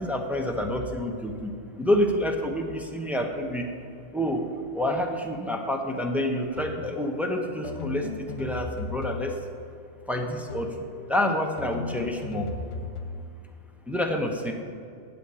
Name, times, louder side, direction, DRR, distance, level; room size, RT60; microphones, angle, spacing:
voice 1, 0.0-1.5 1.8-3.7 4.1-4.4 4.7-8.0 8.4-9.3 10.1-10.7 11.1-12.5 13.9-14.5, left 1 dB, ahead, 2 dB, 0.6 m, -27 dB
sound 1, 6.6-7.0 7.6-9.6 10.5-10.9 11.6-13.3, left 3 dB, 85° left, 1.4 m, -36 dB
8.2 x 7.9 x 6.9 m, 2.5 s
omnidirectional pair, 1.2 m